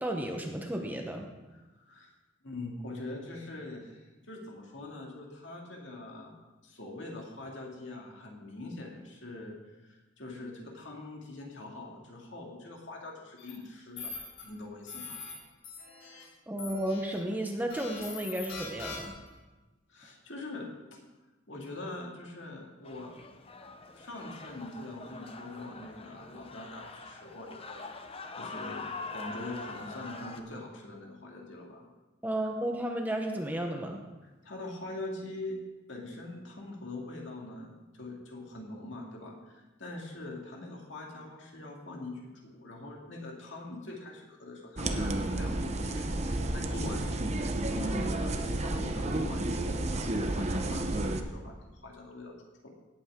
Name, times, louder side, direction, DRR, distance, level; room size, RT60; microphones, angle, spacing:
voice 1, 0.0-1.3 16.5-19.1 32.2-34.0, right 1 dB, 10° right, 2 dB, 0.9 m, -33 dB
voice 2, 1.5-2.1 2.4-6.4 6.6-15.2 19.9-21.0 21.5-23.1 23.9-27.9 28.4-31.9 34.2-35.6 35.9-52.4 52.6-52.7, left 2 dB, 60° left, -1 dB, 2.3 m, -43 dB
sound 1, 13.4-13.5 14.0-14.4 14.9-15.3 15.6-16.2 16.6-17.1 17.7-19.3, left 4 dB, 90° left, 4.9 m, -42 dB
sound 2, 22.8-30.4, left 3 dB, 30° left, 0.8 m, -44 dB
sound 3, 44.8-51.2, right 1 dB, 35° right, 0.8 m, -31 dB
17.0 x 8.7 x 3.7 m, 1.1 s
head